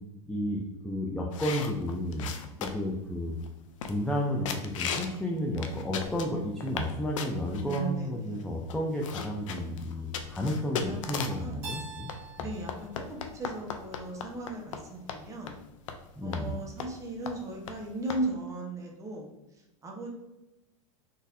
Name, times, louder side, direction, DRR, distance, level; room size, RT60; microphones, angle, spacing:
voice 1, 0.3-2.3 2.6-3.4 3.8-12.1 12.4-12.5 16.2-16.6, equal, 5° left, -1 dB, 0.3 m, -32 dB
sound 1, 1.3-2.9 3.4-3.5 3.8-4.2 4.4-5.2 5.5-6.9 7.2-7.8 8.4-8.5 8.7-11.5 12.1-14.8 15.1-15.2 15.5-15.6 15.9-16.0 16.3-16.4 16.8-17.0 17.3-17.4 17.7-17.8 18.1-18.2, left 7 dB, 85° left, 0.5 m, -36 dB
voice 2, 7.6-8.7 9.9-10.4 10.8-11.0 11.4-11.8 12.4-15.6 16.2-19.3 19.8-20.1, right 2 dB, 20° right, 0 dB, 0.8 m, -37 dB
Keyboard (musical), 11.6-14.4, right 5 dB, 55° right, 1.3 m, -46 dB
3.9 x 2.5 x 2.6 m, 0.98 s
supercardioid pair, 125°, 16 cm